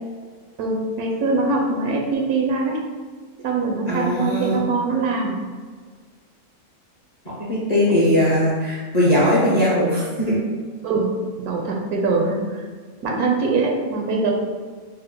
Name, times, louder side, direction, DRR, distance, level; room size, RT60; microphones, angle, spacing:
voice 1, 0.6-2.8 3.4-5.4 7.8-8.1 10.8-11.2 11.5-12.6 13.0-14.3, right 3 dB, 80° right, 0 dB, 1.1 m, -23 dB
voice 2, 3.9-4.6 7.3-10.4, left 1 dB, 45° left, -7 dB, 0.5 m, -20 dB
4.3 x 2.0 x 3.7 m, 1.5 s
omnidirectional pair, 1.6 m